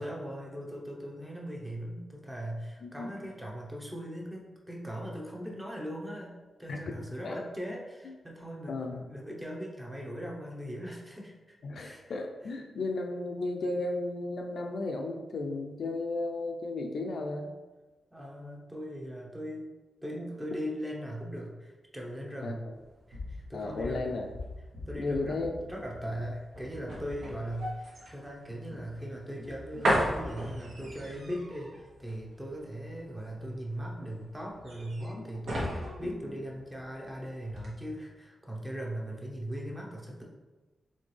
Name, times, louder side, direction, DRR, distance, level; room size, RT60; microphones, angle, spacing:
voice 1, 0.0-6.3 6.6-11.3 11.7-12.0 18.1-19.7 20.0-22.6 23.1-24.2 24.9-40.2, equal, 10° right, -2 dB, 0.7 m, -39 dB
voice 2, 2.8-3.3 6.7-6.8 7.2-7.4 8.0-8.1 8.7-9.1 11.6-17.5 22.4-22.6 23.5-24.3 25.0-25.7 35.2-35.3 36.0-36.4, left 2 dB, 60° left, 2 dB, 0.4 m, -34 dB
sound 1, 22.7-37.1 37.4-37.7, equal, 70° right, 1.2 m, -36 dB
4.2 x 3.3 x 3.2 m, 1.2 s
wide cardioid pair, 155°, 0 cm